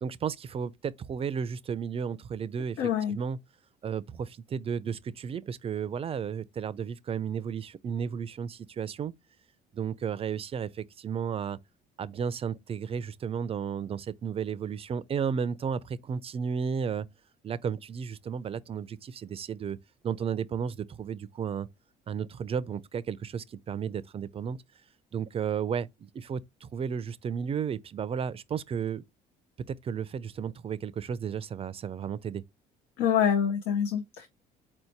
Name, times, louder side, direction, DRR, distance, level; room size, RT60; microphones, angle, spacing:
voice 1, 0.0-3.4 3.8-9.1 9.7-11.6 12.0-17.1 17.4-19.8 20.0-21.7 22.1-24.6 25.1-29.0 29.7-32.4, right 7 dB, 35° right, 0.4 m, -33 dB
voice 2, 2.8-3.2 33.0-34.3, left 8 dB, 90° left, 0.7 m, -26 dB
4.3 x 2.7 x 4.4 m
cardioid pair, 110°, 17 cm